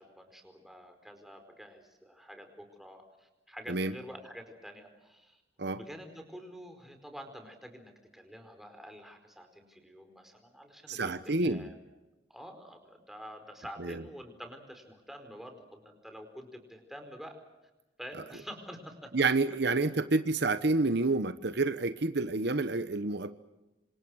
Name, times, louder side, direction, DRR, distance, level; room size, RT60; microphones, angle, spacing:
voice 1, 0.0-5.4 5.7-11.8 12.3-17.4 18.0-19.3, equal, ahead, 5 dB, 4.6 m, -48 dB
voice 2, 10.9-11.7 13.8-14.0 19.1-23.3, right 3 dB, 65° right, 11 dB, 1.1 m, -29 dB
28.0 x 26.5 x 6.4 m, 1.0 s
head